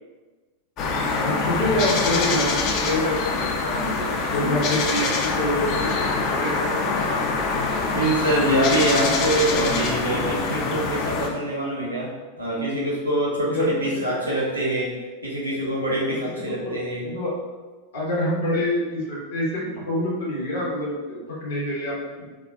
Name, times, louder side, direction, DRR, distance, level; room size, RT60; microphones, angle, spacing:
sound 1, 0.8-11.3, left 4 dB, 40° left, 0.3 m, -24 dB
voice 1, 1.1-7.6 13.4-13.7 16.5-16.7 17.0-17.3 17.9-19.5 19.7-22.2, left 1 dB, 60° left, -5 dB, 0.9 m, -27 dB
voice 2, 7.9-15.0 15.2-17.0, right 1 dB, 85° right, -6 dB, 0.9 m, -24 dB
3.2 x 2.3 x 2.4 m, 1.3 s
figure-of-eight pair, 90°, 0 cm